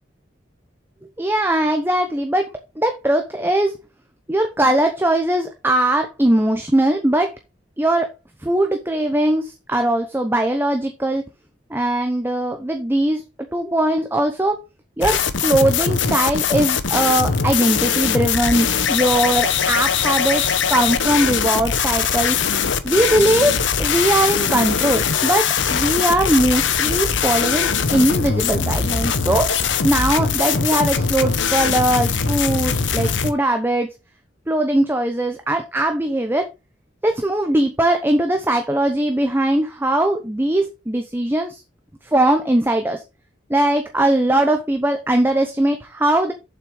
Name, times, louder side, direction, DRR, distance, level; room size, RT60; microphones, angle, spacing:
voice 1, 1.2-3.7 4.3-7.3 7.8-8.1 8.4-11.2 11.7-13.2 13.5-14.6 15.0-22.4 22.8-23.5 23.8-29.5 29.8-33.9 34.5-36.5 37.0-41.6 42.0-43.0 43.5-46.3, right 1 dB, 10° right, 6 dB, 0.8 m, -20 dB
sound 1, 15.0-33.3, left 6 dB, 85° left, 0.9 m, -21 dB
7.4 x 6.0 x 4.8 m, 0.27 s
head